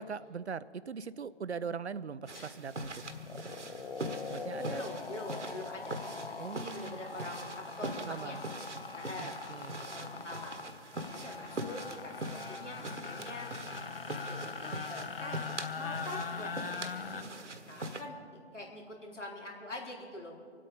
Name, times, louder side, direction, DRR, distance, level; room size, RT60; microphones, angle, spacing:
voice 1, 0.0-3.1 4.3-4.8 6.4-7.0 7.8-8.4 9.2-9.9, right 5 dB, 65° right, 17 dB, 0.6 m, -41 dB
sound 1, 2.3-2.5 2.8-17.2, left 5 dB, 50° left, 0.8 m, -42 dB
sound 2, 2.3-18.0, right 1 dB, 85° right, 1.5 m, -43 dB
voice 2, 4.5-8.4 8.9-9.4 9.7-10.5 11.1-13.5 13.8-15.5 15.7-17.0 17.6-18.2 18.5-20.3, left 1 dB, 85° left, -1 dB, 4.0 m, -44 dB
Wind instrument woodwind instrument, 5.6-16.5, left 3 dB, 10° right, 0.7 m, -57 dB
25.5 x 8.6 x 5.3 m, 2.4 s
figure-of-eight pair, 160°, 36 cm